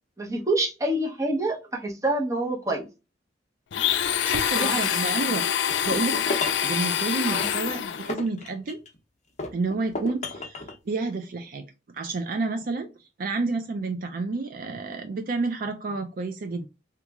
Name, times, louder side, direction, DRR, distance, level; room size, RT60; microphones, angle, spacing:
voice 1, 0.2-2.9 4.6-5.0 7.2-7.5, right 1 dB, 20° right, 0.8 m, -27 dB
Domestic sounds home sounds, 3.7-8.1, left 9 dB, 85° left, 0.4 m, -26 dB
voice 2, 4.2-5.4 5.8-6.2 6.6-8.8 9.5-11.6 11.9-12.9 13.2-16.7, right 3 dB, 50° right, 0.4 m, -29 dB
sound 1, 5.7-6.7 7.4-9.0 9.4-10.8, left 2 dB, 40° left, 0.7 m, -33 dB
3.0 x 2.4 x 3.4 m
head